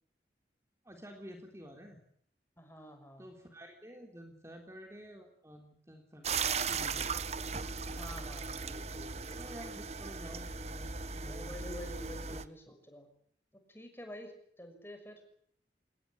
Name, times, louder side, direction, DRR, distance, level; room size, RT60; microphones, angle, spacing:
voice 1, 0.8-2.0 3.2-7.1 9.3-11.6 12.3-12.5, equal, 15° right, 3 dB, 3.5 m, -50 dB
voice 2, 2.6-3.3 7.9-9.5 11.3-13.1 13.7-15.2, equal, 15° left, 6 dB, 6.3 m, -49 dB
sound 1, 6.2-12.4, right 5 dB, 35° right, 1.2 m, -37 dB
26.5 x 20.5 x 7.9 m, 0.63 s
head